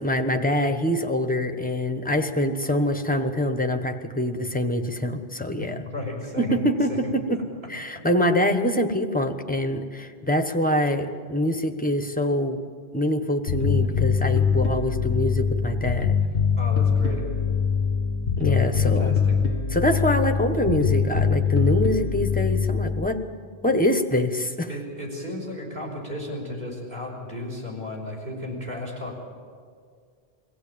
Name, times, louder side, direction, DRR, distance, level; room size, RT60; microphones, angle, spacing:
voice 1, 0.0-5.8 6.4-7.4 7.7-12.6 12.9-16.2 18.4-19.2 19.7-23.2 23.6-24.7, left 1 dB, 10° left, 6 dB, 1.1 m, -24 dB
voice 2, 5.9-6.6 6.9-7.1 16.6-17.3 18.5-19.4 24.7-29.3, left 1 dB, 55° right, -2 dB, 5.6 m, -34 dB
Bass guitar, 13.5-23.1, left 6 dB, 85° left, 1.2 m, -23 dB
23.0 x 16.5 x 8.7 m, 2.1 s
omnidirectional pair, 1.1 m